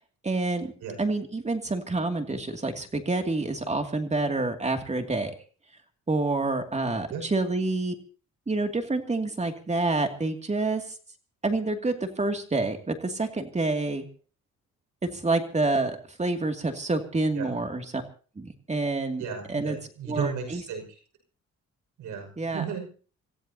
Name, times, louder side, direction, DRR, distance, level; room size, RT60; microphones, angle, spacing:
voice 1, 0.2-0.7 1.0-5.3 6.1-8.0 8.5-10.8 11.4-14.0 15.1-18.0 18.4-19.2 19.5-19.8 20.1-20.6 22.4-22.6, right 2 dB, 20° right, 5 dB, 2.6 m, -28 dB
voice 2, 19.2-21.0 22.0-22.9, right 6 dB, 85° right, 4 dB, 6.2 m, -34 dB
27.0 x 15.5 x 2.9 m, 0.39 s
cardioid pair, 90°, 30 cm